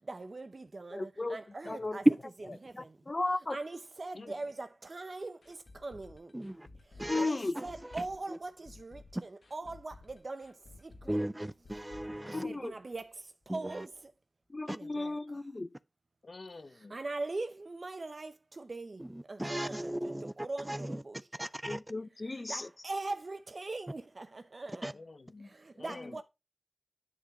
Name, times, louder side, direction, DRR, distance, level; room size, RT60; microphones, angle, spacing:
voice 1, 0.1-2.1 2.6-2.9 3.5-5.6 5.8-6.3 7.1-10.5 10.8-11.2 12.4-13.1 13.5-13.9 14.7-15.2 16.9-19.0 19.3-21.5 22.5-24.9 25.6-26.2, right 2 dB, 60° right, 0.6 m, -41 dB
voice 2, 0.9-1.4 1.7-2.0 2.8-3.6 7.1-7.6 12.3-12.7 14.5-15.7 21.6-22.7 25.9-26.1, left 2 dB, 45° left, 0.5 m, -35 dB
voice 3, 1.5-1.9 4.1-4.4 7.1-7.5 12.2-12.6 16.2-17.0 20.0-20.1 24.9-26.2, left 3 dB, 65° left, 0.8 m, -49 dB
sound 1, 5.4-13.2 13.4-13.5 13.9-14.0, left 3 dB, 85° left, 1.2 m, -55 dB
voice 4, 6.3-6.7 7.0-7.3 7.6-7.7 8.3-8.4 11.1-12.4 13.5-13.9 14.7-14.8 19.0-21.0 21.4-21.8 24.8-24.9, right 1 dB, 15° right, 0.4 m, -37 dB
10.0 x 3.9 x 4.2 m
wide cardioid pair, 60°, 0 cm